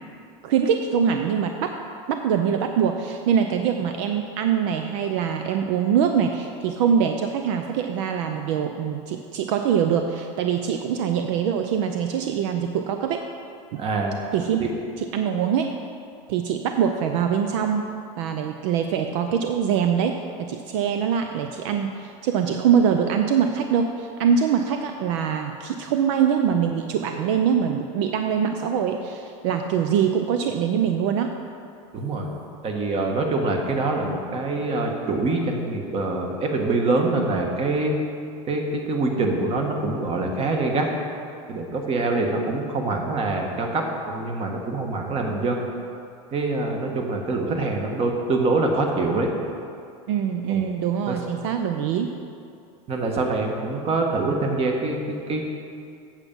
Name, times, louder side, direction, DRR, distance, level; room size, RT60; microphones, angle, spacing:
voice 1, 0.4-1.8 2.1-13.3 13.7-13.8 14.3-14.6 15.0-15.7 16.3-17.9 18.2-31.3 50.1-52.1, right 7 dB, 75° right, 5 dB, 0.6 m, -23 dB
voice 2, 13.7-14.2 14.6-14.7 31.9-32.3 32.6-37.9 38.5-40.9 41.5-45.7 46.3-49.3 50.5-50.6 51.1-51.2 52.9-55.4, right 3 dB, 40° right, 2 dB, 1.4 m, -25 dB
8.1 x 7.3 x 5.4 m, 2.5 s
supercardioid pair, 115°, 16 cm